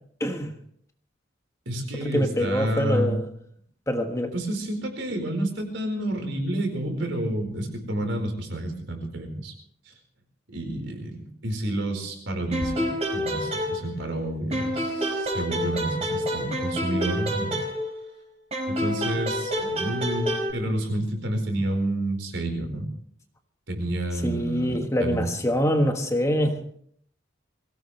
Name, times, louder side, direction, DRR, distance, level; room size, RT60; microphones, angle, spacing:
voice 1, 0.2-0.5 2.0-3.2 3.9-4.3 24.2-26.6, equal, 15° left, 5 dB, 1.3 m, -25 dB
voice 2, 1.6-3.2 4.3-9.5 9.8-9.9 10.5-17.6 18.7-22.9 23.7-25.3, right 1 dB, 70° right, 4 dB, 4.6 m, -29 dB
sound 1, 12.5-14.2 14.5-18.1 18.5-20.5, equal, 30° right, 5.0 m, -28 dB
23.5 x 17.0 x 3.3 m, 0.62 s
head